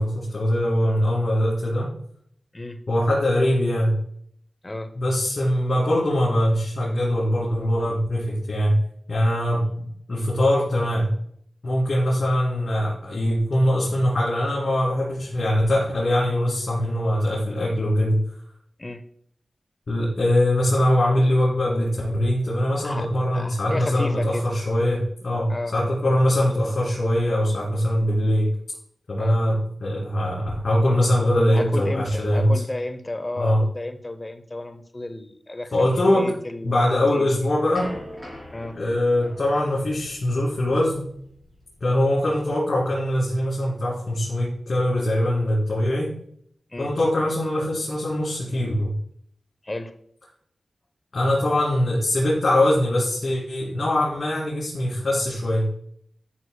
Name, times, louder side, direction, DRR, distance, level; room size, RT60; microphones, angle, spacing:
voice 1, 0.0-1.9 2.9-4.0 4.9-8.7 9.1-11.1 11.6-18.2 19.9-28.5 29.1-32.6 33.3-33.6 35.7-36.3 36.6-37.9 38.7-41.0 41.8-46.1 46.8-48.9 51.1-55.7, left 1 dB, 60° left, -7 dB, 2.6 m, -22 dB
voice 2, 23.3-24.4 25.5-25.7 29.2-29.4 31.5-35.7 36.0-36.8 37.1-37.4 38.5-38.8 46.7-46.9 49.6-49.9, left 2 dB, 25° left, 9 dB, 0.7 m, -32 dB
sound 1, 37.0-41.9, left 1 dB, 10° right, 3.2 m, -42 dB
11.0 x 6.4 x 2.3 m, 0.67 s
wide cardioid pair, 90°, 0 cm